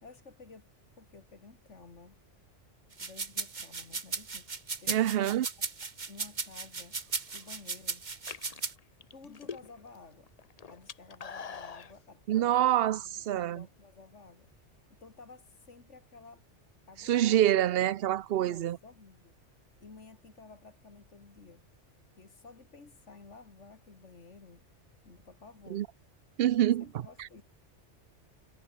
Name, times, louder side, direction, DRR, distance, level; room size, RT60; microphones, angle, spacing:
voice 1, 0.0-2.2 3.0-5.7 6.1-7.0 7.3-8.1 9.1-10.3 10.7-16.4 16.9-17.4 18.3-19.3 19.8-21.6 22.2-24.6 25.0-25.8 26.8-27.4, left 4 dB, 90° left, 2.8 m, -53 dB
sound 1, 2.9-8.7, right 4 dB, 40° right, 1.5 m, -36 dB
voice 2, 4.9-5.5 12.3-13.6 17.0-18.8 25.7-25.9 26.4-26.8 27.2-27.3, right 12 dB, 65° right, 0.7 m, -26 dB
sound 2, 7.1-7.6 8.1-10.0 10.3-11.9, left 6 dB, 40° left, 0.8 m, -43 dB
omnidirectional pair, 1.2 m